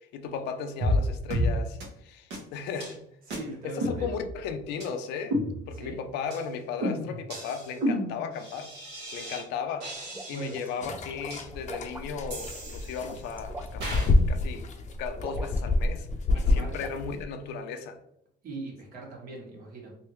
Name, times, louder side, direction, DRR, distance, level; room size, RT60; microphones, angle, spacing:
voice 1, 0.0-3.1 3.6-5.4 5.7-8.7 9.1-9.9 10.3-14.7 15.0-16.1 16.3-18.0, left 6 dB, 90° left, 0.5 m, -36 dB
sound 1, 0.8-1.0 1.3-1.5 1.8-1.9 2.3-2.4 2.8-3.0 3.3-3.4 3.8-4.4 4.8-4.9 5.3-5.9 6.3-6.5 6.8-9.4 9.8-10.7 11.3-11.4 12.3-13.3 13.8-14.1, equal, 85° right, 1.2 m, -31 dB
voice 2, 3.3-4.2 5.7-6.0 10.3-10.7 16.3-16.8 18.4-20.0, right 2 dB, 60° right, 1.3 m, -40 dB
sound 2, 10.1-12.3 12.8-14.0 15.2-16.0 16.2-17.0, right 2 dB, 10° right, 0.4 m, -43 dB
sound 3, 10.8-17.2, left 2 dB, 45° left, 0.6 m, -28 dB
3.4 x 2.6 x 3.0 m
cardioid pair, 110°, 17 cm